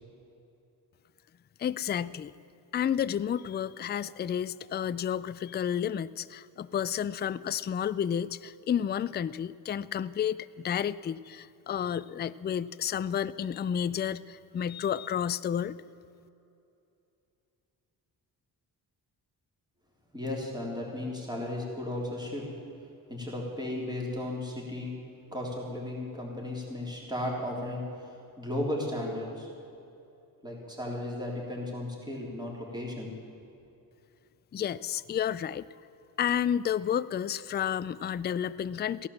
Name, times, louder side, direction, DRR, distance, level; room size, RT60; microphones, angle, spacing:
voice 1, 1.6-2.4 2.7-15.8 34.5-35.7 36.2-39.1, left 9 dB, 30° left, 15 dB, 0.3 m, -31 dB
voice 2, 20.1-22.5 23.1-25.0 25.3-28.1 28.4-29.5 30.4-33.1, left 1 dB, 10° right, -3 dB, 3.6 m, -35 dB
16.0 x 11.5 x 7.3 m, 2.7 s
cardioid pair, 105°, 38 cm